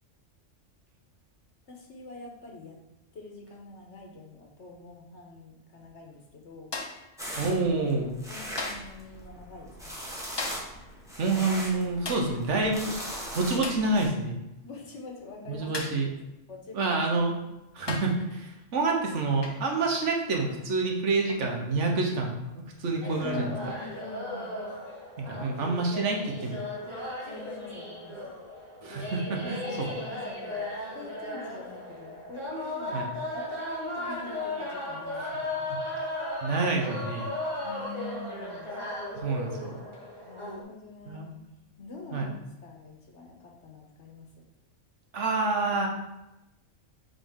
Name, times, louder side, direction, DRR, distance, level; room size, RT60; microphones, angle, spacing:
voice 1, 1.7-2.8 3.1-6.7 7.5-10.0 14.6-15.7 16.0-16.1 16.5-16.9 17.4-17.5 23.2-24.6 27.2-28.3 29.4-35.7 37.6-38.7 40.2-41.4 41.8-44.3, left 3 dB, 60° left, 0 dB, 1.3 m, -45 dB
sound 1, 6.7-7.1 8.6-9.0 10.4-10.8 12.1-12.4 13.6-13.9 15.7-16.1 17.2-17.3 17.9-18.2 19.4-19.7 21.3-21.5, left 3 dB, 35° left, 0.4 m, -36 dB
sound 2, 7.2-14.1, equal, 5° right, 1.1 m, -40 dB
voice 2, 7.4-8.1 11.2-12.9 13.3-14.4 15.5-16.1 16.7-17.3 17.7-23.5 25.2-26.6 28.8-29.9 32.9-33.1 36.0-36.1 36.4-37.3 39.1-39.8 41.1-41.3 42.1-42.3 45.1-45.9, right 3 dB, 65° right, 1 dB, 1.2 m, -28 dB
sound 3, 23.0-40.6, left 1 dB, 25° right, 1.5 m, -36 dB
7.1 x 3.6 x 3.6 m, 0.94 s
omnidirectional pair, 1.3 m